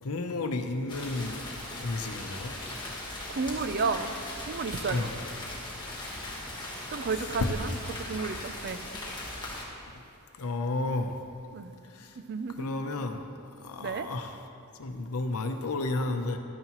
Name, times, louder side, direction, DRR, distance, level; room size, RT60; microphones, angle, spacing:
voice 1, 0.0-1.4 1.8-2.5 4.9-5.1 7.2-7.8 10.4-11.1 12.0-12.1 12.6-13.2 13.6-14.4 14.8-16.4, left 2 dB, 85° left, 6 dB, 0.7 m, -32 dB
sound 1, 0.9-9.6, left 1 dB, 20° left, 1.5 m, -39 dB
voice 2, 3.3-4.1 4.5-5.1 6.9-7.7 8.1-8.8 11.5-11.7 12.3-12.7 13.8-14.1, right 4 dB, 50° right, 9 dB, 0.4 m, -32 dB
12.0 x 9.5 x 3.0 m, 2.6 s
head